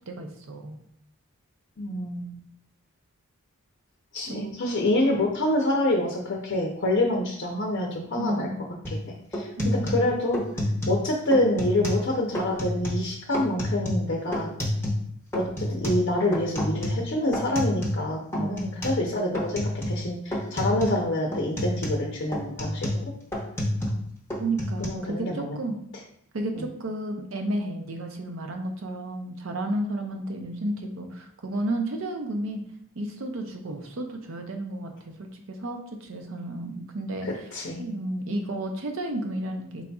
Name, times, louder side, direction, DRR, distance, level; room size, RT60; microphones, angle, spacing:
voice 1, 0.1-0.8 4.3-4.6 8.2-8.6 9.6-10.0 18.4-18.9 24.4-25.8 26.3-32.6 33.0-37.3 37.8-39.9, right 1 dB, 60° right, 4 dB, 0.5 m, -32 dB
voice 2, 1.8-2.4 4.1-8.5 8.9-10.4 10.9-14.5 15.3-23.1 24.8-25.6 26.5-26.6 37.2-37.8, left 1 dB, 50° left, -1 dB, 0.6 m, -27 dB
sound 1, 8.8-9.0 9.3-11.0 11.3-12.1 12.3-13.0 13.3-15.1 15.3-18.1 18.3-19.0 19.3-20.1 20.3-21.0 21.3-24.0 24.3-24.9, left 1 dB, 10° left, 0.8 m, -29 dB
4.7 x 4.0 x 2.3 m, 0.68 s
head